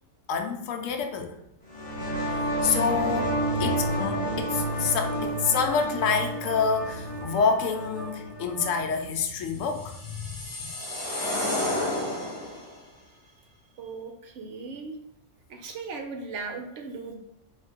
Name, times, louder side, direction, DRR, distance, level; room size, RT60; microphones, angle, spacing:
voice 1, 0.3-1.4 2.3-10.7 11.4-11.7, left 5 dB, 75° left, 4 dB, 0.9 m, -28 dB
sound 1, 1.6-9.0, right 1 dB, 40° left, 1.0 m, -30 dB
sound 2, 9.5-12.7, left 1 dB, 15° left, 1.0 m, -31 dB
voice 2, 13.8-14.9 15.5-17.1, right 4 dB, 70° right, 3 dB, 0.9 m, -37 dB
3.6 x 2.6 x 3.5 m, 0.81 s
omnidirectional pair, 1.4 m